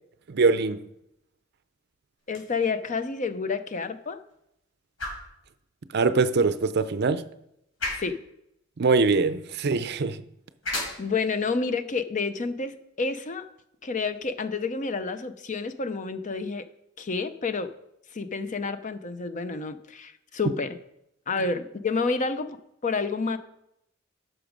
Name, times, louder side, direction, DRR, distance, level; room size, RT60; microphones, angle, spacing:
voice 1, 0.3-0.8 5.9-7.2 8.8-10.2, right 4 dB, 55° right, 0.5 m, -23 dB
sound 1, 2.2-14.2, left 2 dB, 75° left, 4.4 m, -41 dB
voice 2, 2.3-4.2 7.9-8.2 11.0-13.4 13.8-16.6 17.0-17.7 18.1-20.8 21.3-22.6 22.8-23.4, left 4 dB, 40° left, 0.6 m, -29 dB
11.0 x 6.2 x 5.1 m
head